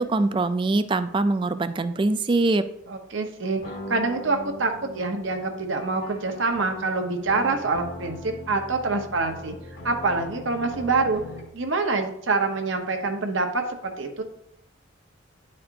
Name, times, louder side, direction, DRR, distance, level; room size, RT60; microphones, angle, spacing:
voice 1, 0.0-2.6, right 2 dB, 25° right, 11 dB, 0.3 m, -23 dB
voice 2, 2.9-3.6 3.9-9.6 9.8-11.2 11.5-14.2, right 3 dB, 75° right, 4 dB, 0.8 m, -26 dB
sound 1, 3.6-11.6, left 1 dB, 70° left, 2.0 m, -40 dB
9.9 x 4.2 x 2.6 m, 0.75 s
head